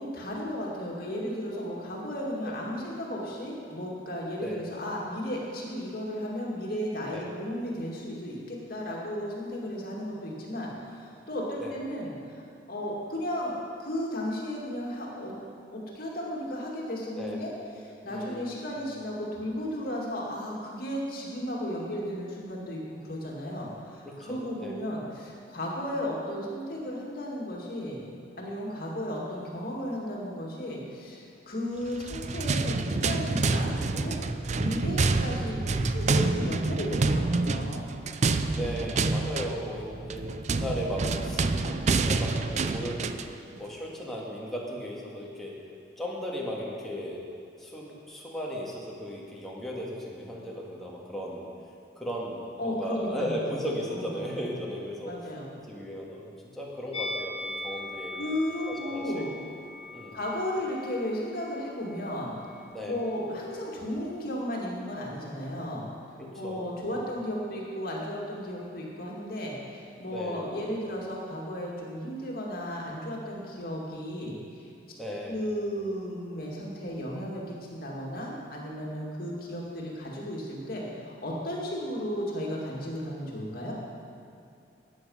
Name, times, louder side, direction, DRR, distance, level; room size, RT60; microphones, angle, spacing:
voice 1, 0.0-12.4 12.7-15.3 15.7-17.5 17.8-28.0 28.4-34.2 34.5-37.8 52.6-53.6 53.9-54.2 55.0-55.5 58.1-59.4 60.1-62.3 62.8-65.8 66.4-74.7 75.3-83.7, equal, 55° left, -3 dB, 2.3 m, -34 dB
voice 2, 18.1-18.6 24.1-24.8 38.5-43.2 43.6-45.6 46.0-47.2 47.6-51.5 52.0-55.1 55.7-56.3 56.6-58.1 58.7-59.1 59.9-60.2 62.7-63.0 66.2-66.9 70.1-70.5 75.0-75.4, equal, ahead, -5 dB, 1.9 m, -36 dB
sound 1, 31.9-43.4, right 3 dB, 40° right, 0.4 m, -28 dB
Musical instrument, 56.9-62.2 62.4-62.6, left 2 dB, 35° left, 0.9 m, -40 dB
12.5 x 9.0 x 5.6 m, 2.6 s
head